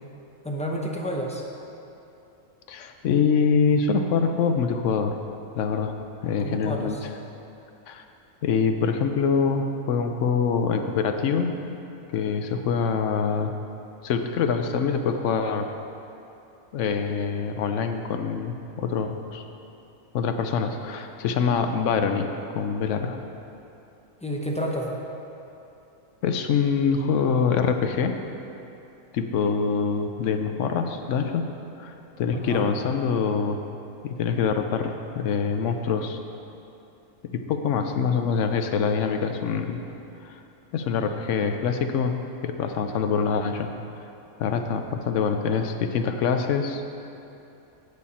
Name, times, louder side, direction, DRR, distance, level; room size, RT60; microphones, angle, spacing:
voice 1, 0.4-1.4 6.4-7.0 24.2-25.0 32.4-32.7, equal, 5° left, -2 dB, 0.6 m, -30 dB
voice 2, 2.7-5.2 5.5-5.9 6.2-7.1 7.9-8.0 8.4-11.6 12.1-13.5 14.0-15.7 16.7-19.4 20.1-22.3 22.5-23.2 26.2-28.2 29.1-31.4 31.8-33.6 34.0-36.2 37.3-39.8 40.2-40.4 40.7-42.1 42.4-43.7 44.4-46.9, left 6 dB, 75° left, 6 dB, 1.0 m, -25 dB
8.6 x 8.2 x 4.2 m, 2.8 s
omnidirectional pair, 1.3 m